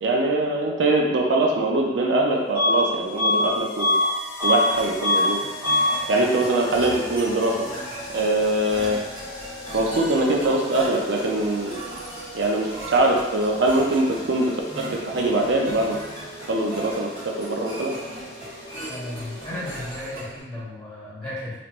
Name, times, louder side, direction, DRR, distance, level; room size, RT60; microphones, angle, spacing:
voice 1, 0.0-3.9 4.4-5.4 6.1-7.7 8.1-9.0 9.7-11.8 12.3-16.0 16.5-17.9, right 2 dB, 90° right, 0 dB, 0.5 m, -22 dB
sound 1, 2.0-19.9, equal, 55° left, 0.8 m, -40 dB
Bus / Alarm, 2.5-2.9 3.2-4.7 5.0-5.3 5.6-6.0, left 1 dB, 10° right, 1.0 m, -21 dB
sound 2, 4.4-20.4, right 1 dB, 50° right, 1.5 m, -39 dB
voice 2, 18.9-21.6, left 1 dB, 5° left, -13 dB, 1.5 m, -34 dB
3.3 x 2.9 x 2.5 m, 1.0 s
head